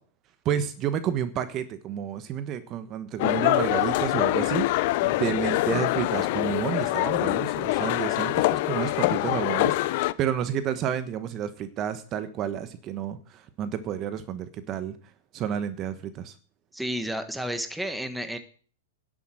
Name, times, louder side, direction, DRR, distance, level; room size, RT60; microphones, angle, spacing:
voice 1, 0.4-4.7 5.0-15.0 15.3-16.3, right 9 dB, 30° right, 12 dB, 1.2 m, -30 dB
sound 1, 3.2-10.1, left 18 dB, 50° left, 0.6 m, -25 dB
voice 2, 16.7-18.4, equal, ahead, 9 dB, 1.3 m, -31 dB
11.0 x 7.9 x 7.7 m, 0.43 s
hypercardioid pair, 135°, 0 cm